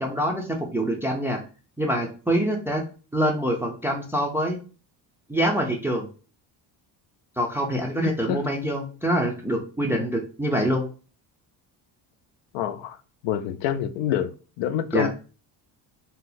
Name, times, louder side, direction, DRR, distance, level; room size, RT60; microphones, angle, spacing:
voice 1, 0.0-1.4 1.8-2.8 3.1-4.6 5.3-6.1 7.4-10.8 14.9-15.1, equal, 5° right, 0.3 m, -25 dB
voice 2, 8.0-8.4 12.5-13.0 13.2-14.3 14.6-15.1, left 10 dB, 85° left, 0.5 m, -26 dB
2.8 x 2.1 x 3.9 m
cardioid pair, 145°, 43 cm